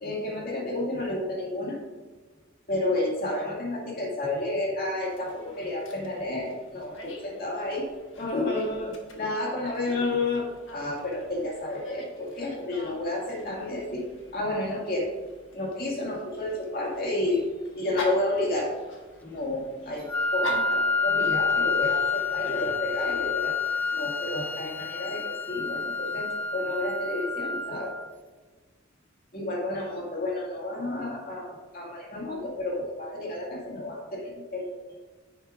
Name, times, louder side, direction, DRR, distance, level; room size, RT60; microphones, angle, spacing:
voice 1, 0.0-1.8 2.7-7.9 8.2-14.0 14.3-15.1 15.5-17.5 17.7-18.8 19.2-23.6 23.9-28.0 29.3-34.8, left 2 dB, 50° left, -2 dB, 2.0 m, -31 dB
Dog, 5.0-23.3, left 1 dB, 65° left, 1.4 m, -44 dB
Wind instrument woodwind instrument, 20.1-28.1, left 4 dB, 10° left, 0.3 m, -28 dB
10.0 x 7.0 x 2.5 m, 1.4 s
head